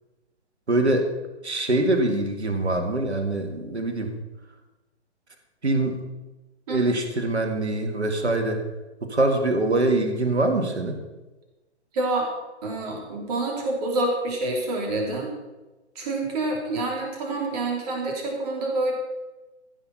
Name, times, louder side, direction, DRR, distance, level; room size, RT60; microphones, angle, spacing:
voice 1, 0.7-1.1 1.4-4.1 5.6-6.0 6.7-8.6 9.0-11.0, right 2 dB, 70° right, 5 dB, 2.2 m, -23 dB
voice 2, 11.9-12.3 12.6-15.3 15.9-18.9, right 2 dB, 35° right, 0 dB, 3.2 m, -27 dB
15.0 x 6.5 x 5.6 m, 1.1 s
figure-of-eight pair, 130°, 35 cm